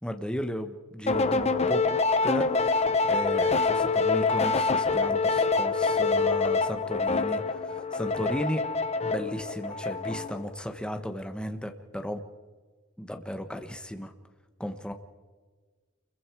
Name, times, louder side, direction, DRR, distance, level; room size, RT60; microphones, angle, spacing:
voice 1, 0.0-8.6 9.0-12.2 13.0-14.1 14.6-14.9, equal, 5° left, 6 dB, 1.4 m, -35 dB
sound 1, 1.1-10.5, left 4 dB, 30° left, 0.9 m, -26 dB
28.0 x 22.5 x 4.8 m, 1.4 s
head